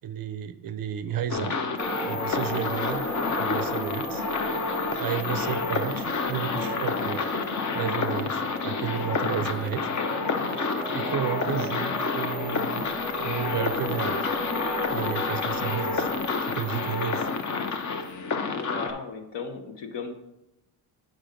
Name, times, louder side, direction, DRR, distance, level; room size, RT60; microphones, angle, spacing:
voice 1, 0.0-1.6 2.0-3.1 3.4-4.2 5.0-7.2 7.7-9.9 10.9-12.9 13.2-14.2 14.9-16.1 16.4-17.3, right 9 dB, 50° right, 11 dB, 0.5 m, -32 dB
sound 1, 1.3-18.9, left 4 dB, 40° left, 0.7 m, -29 dB
sound 2, 1.8-18.1, equal, 5° left, 1.6 m, -35 dB
voice 2, 15.5-16.0 18.5-20.1, left 5 dB, 60° left, 6 dB, 1.0 m, -37 dB
7.7 x 5.0 x 3.8 m, 0.90 s
cardioid pair, 115°, 47 cm